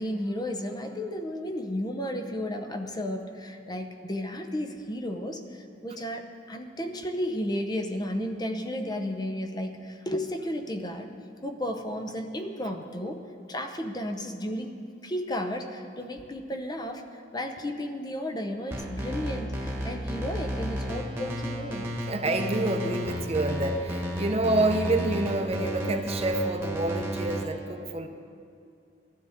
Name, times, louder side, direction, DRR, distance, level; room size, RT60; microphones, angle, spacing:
voice 1, 0.0-11.1 11.4-14.8 15.0-21.9, left 1 dB, 25° left, 5 dB, 0.7 m, -33 dB
sound 1, 18.7-27.4, equal, 15° right, 1.4 m, -33 dB
voice 2, 22.1-28.1, right 2 dB, 35° right, 6 dB, 0.7 m, -27 dB
17.5 x 12.5 x 3.6 m, 2.4 s
head